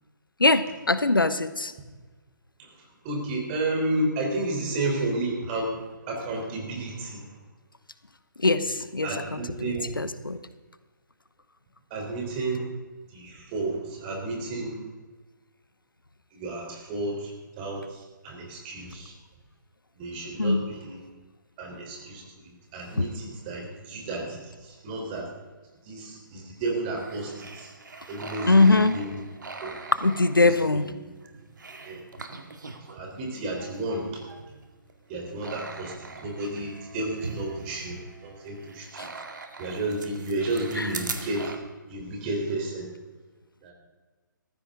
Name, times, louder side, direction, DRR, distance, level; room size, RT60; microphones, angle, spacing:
voice 1, 0.4-1.7 8.4-10.4 20.4-20.6 23.0-23.1 28.5-29.0 30.0-30.9 39.0-39.1 40.7-40.9, left 3 dB, 85° left, 13 dB, 0.9 m, -22 dB
voice 2, 3.0-5.8 6.1-7.2 8.5-8.7 9.0-9.8 11.9-12.7 13.1-14.8 16.3-17.3 17.6-19.1 20.0-21.0 21.6-25.3 25.9-27.7 28.1-29.2 29.6-29.8 30.4-30.9 31.9-32.0 32.9-34.2 35.1-39.1 39.6-41.5 41.9-42.9 43.6-43.7, right 2 dB, 30° right, 0 dB, 3.8 m, -32 dB
sound 1, 26.8-33.0 33.3-41.6, right 4 dB, 65° right, 2.0 m, -42 dB
17.5 x 14.5 x 3.8 m, 1.3 s
figure-of-eight pair, 135°, 11 cm